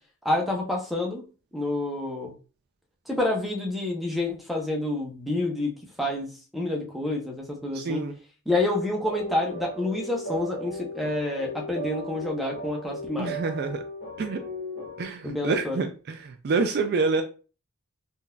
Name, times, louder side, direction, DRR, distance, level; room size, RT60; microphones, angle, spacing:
voice 1, 0.2-1.2 1.5-2.3 3.1-8.0 8.5-13.4 15.2-15.8, left 2 dB, ahead, 0.6 m, -28 dB
voice 2, 7.7-8.2 13.2-13.8 14.2-14.4 15.0-17.2, right 4 dB, 45° right, 0.3 m, -27 dB
sound 1, 9.0-15.0, right 1 dB, 60° left, 1.7 m, -37 dB
3.7 x 2.6 x 2.3 m
head